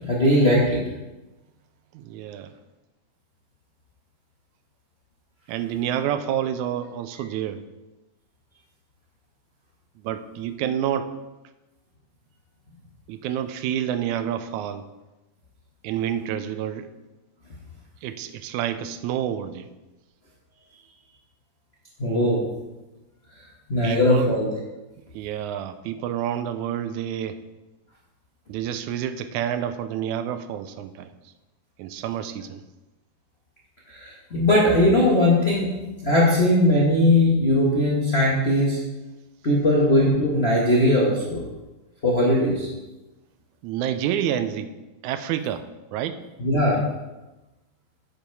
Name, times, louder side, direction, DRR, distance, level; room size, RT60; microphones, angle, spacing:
voice 1, 0.1-0.8 22.0-22.4 23.7-24.5 33.9-35.7 36.0-38.8 39.4-41.4 42.0-42.7 46.4-46.8, left 1 dB, 55° left, -6 dB, 0.7 m, -19 dB
voice 2, 1.9-2.5 5.5-7.6 10.0-11.1 13.1-14.9 15.8-16.9 18.0-19.7 23.8-24.3 25.1-27.4 28.5-31.1 31.8-32.6 43.6-44.7 45.0-45.6 45.9-46.2, right 10 dB, 85° right, 11 dB, 2.0 m, -28 dB
8.8 x 5.4 x 4.6 m, 1.1 s
omnidirectional pair, 3.3 m